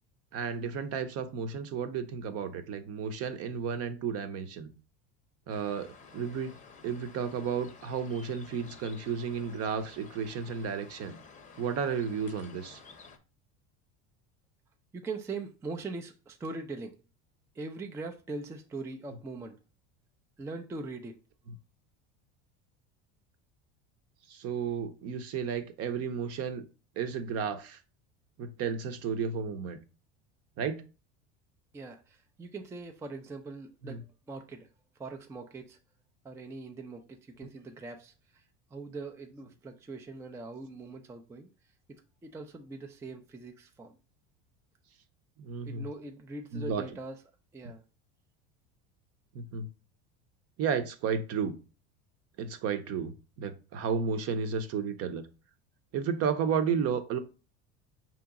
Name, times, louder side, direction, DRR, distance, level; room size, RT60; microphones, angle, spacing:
voice 1, 0.3-4.7 5.5-6.5 6.8-11.2 11.6-12.8 24.3-26.6 27.0-27.8 28.4-29.8 30.6-30.8 33.8-34.0 45.4-45.9 46.5-46.8 49.3-49.7 50.6-51.5 52.4-55.3 55.9-57.2, right 6 dB, 50° right, 0.7 m, -33 dB
sound 1, 5.5-13.2, left 5 dB, 25° left, 0.7 m, -53 dB
voice 2, 14.9-16.9 17.5-19.6 20.4-21.2 31.7-34.7 35.0-35.8 36.2-38.4 38.7-41.5 41.9-44.0 45.6-47.2 47.5-47.8, right 3 dB, 10° right, 0.4 m, -41 dB
5.0 x 2.9 x 3.6 m
supercardioid pair, 110°, 32 cm